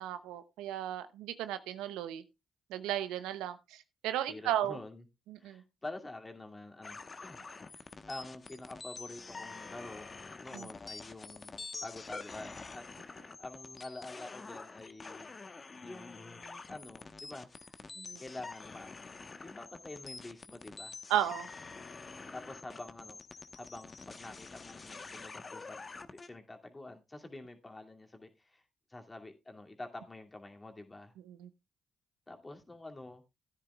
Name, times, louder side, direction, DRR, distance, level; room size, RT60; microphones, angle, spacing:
voice 1, 0.0-2.2 2.7-4.8 5.3-5.6 10.5-10.7 18.0-18.2 21.1-21.5 31.3-31.5, right 11 dB, 85° right, 0.7 m, -35 dB
voice 2, 4.3-5.0 5.4-10.1 10.4-15.3 15.8-17.8 18.2-18.9 19.4-21.0 22.3-25.8 26.3-28.6 28.9-31.1 32.3-33.2, left 2 dB, 25° left, 2.4 m, -47 dB
sound 1, 6.8-26.3, left 4 dB, 40° left, 1.1 m, -47 dB
16.0 x 10.0 x 2.3 m
supercardioid pair, 55°, 0 cm